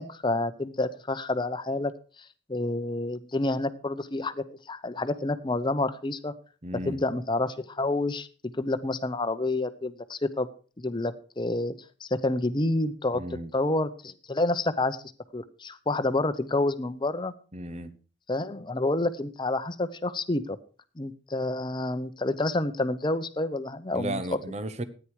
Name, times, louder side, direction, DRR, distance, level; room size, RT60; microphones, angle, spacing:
voice 1, 0.0-1.9 2.5-6.3 6.9-8.3 8.6-10.5 10.8-11.7 12.0-13.2 13.5-15.0 15.3-17.3 18.3-20.6 21.0-24.2, left 2 dB, 25° left, 0.8 m, -28 dB
voice 2, 6.6-7.0 13.1-13.5 17.5-17.9 23.9-24.8, right 1 dB, 35° right, 1.0 m, -34 dB
13.5 x 9.9 x 4.8 m
head